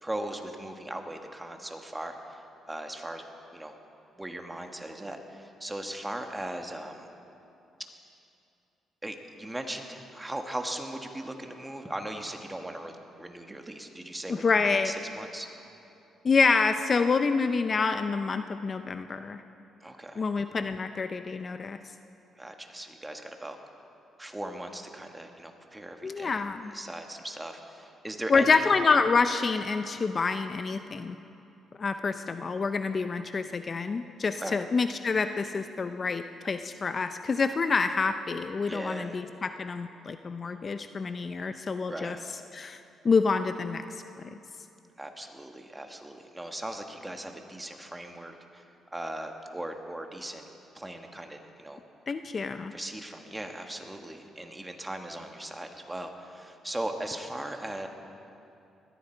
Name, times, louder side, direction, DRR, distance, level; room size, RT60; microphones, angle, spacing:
voice 1, 0.0-2.4 2.7-3.2 3.5-3.7 4.2-7.1 9.0-15.5 19.8-20.2 22.4-23.6 24.2-26.4 26.7-28.6 34.4-34.6 38.6-39.2 41.9-42.2 45.0-48.6 48.9-50.4 50.7-51.8 52.7-57.9, right 1 dB, 10° right, 4 dB, 1.5 m, -38 dB
voice 2, 14.3-14.9 16.2-19.4 20.2-21.8 26.0-26.7 28.3-31.2 31.8-42.2 42.5-44.0 52.1-52.7, left 4 dB, 40° left, 9 dB, 0.5 m, -27 dB
21.0 x 14.0 x 4.5 m, 2.7 s
cardioid pair, 90°, 0 cm